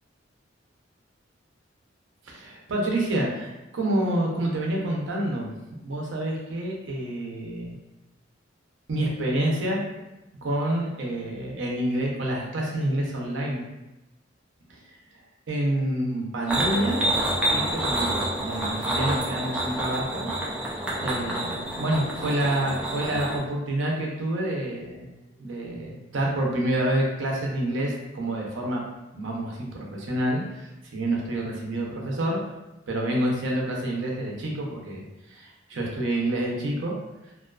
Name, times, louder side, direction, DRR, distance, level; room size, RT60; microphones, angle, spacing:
voice 1, 2.3-5.5 5.8-7.7 8.9-9.8 10.4-13.6 14.7-14.9 15.5-17.1 17.5-20.3 21.0-25.1 25.4-28.9 29.1-32.4 32.9-36.9, right 1 dB, 85° right, -2 dB, 0.6 m, -28 dB
sound 1, 16.5-23.4, right 1 dB, 5° right, 0.4 m, -28 dB
2.4 x 2.3 x 2.3 m, 0.96 s
head